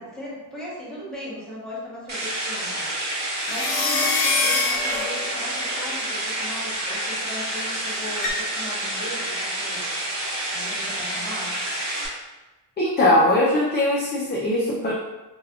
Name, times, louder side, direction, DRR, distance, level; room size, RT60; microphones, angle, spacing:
voice 1, 0.0-2.9 3.2-9.9 10.5-11.5, equal, ahead, -7 dB, 1.2 m, -37 dB
sound 1, 2.1-12.1, right 1 dB, 40° right, 0.9 m, -29 dB
sound 2, 3.4-5.6 8.2-8.3, left 3 dB, 65° left, 0.7 m, -24 dB
voice 2, 12.8-14.9, left 1 dB, 25° left, -5 dB, 0.4 m, -20 dB
3.4 x 2.2 x 2.3 m, 1.1 s
cardioid pair, 90°, 42 cm